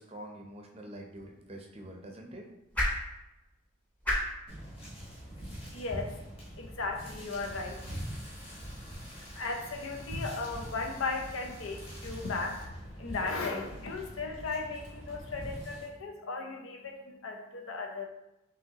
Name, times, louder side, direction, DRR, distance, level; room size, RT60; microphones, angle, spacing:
voice 1, 0.0-2.5, right 1 dB, 30° right, 1 dB, 0.6 m, -46 dB
sound 1, 0.9-7.2, left 1 dB, 5° left, 0.7 m, -38 dB
sound 2, 4.5-15.9, equal, 30° left, 1.2 m, -44 dB
voice 2, 5.7-6.2 6.5-8.1 9.3-18.0, left 3 dB, 85° left, 2 dB, 0.7 m, -36 dB
Tools, 7.3-12.6, left 1 dB, 60° left, 1.5 m, -53 dB
5.2 x 2.8 x 2.9 m, 0.91 s
head